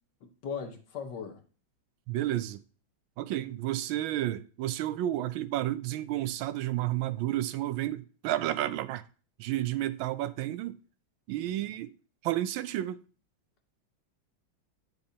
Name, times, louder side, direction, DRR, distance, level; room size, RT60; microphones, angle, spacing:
voice 1, 0.2-1.4 11.4-11.7, left 6 dB, 60° left, 1.7 m, -39 dB
voice 2, 2.1-2.6 3.2-9.0 9.4-10.8 11.3-11.9 12.2-13.0, right 14 dB, 80° right, 1.3 m, -31 dB
8.4 x 6.5 x 2.7 m
omnidirectional pair, 2.2 m